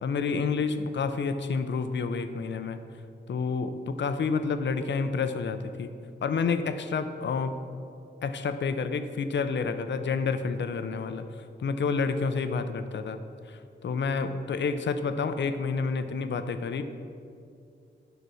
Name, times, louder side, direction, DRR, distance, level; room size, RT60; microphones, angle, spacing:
voice 1, 0.0-2.8 3.3-5.9 6.2-7.6 8.2-13.2 13.5-16.8, left 5 dB, 75° left, 9 dB, 0.6 m, -29 dB
8.1 x 5.8 x 6.3 m, 2.5 s
cardioid pair, 80°, 19 cm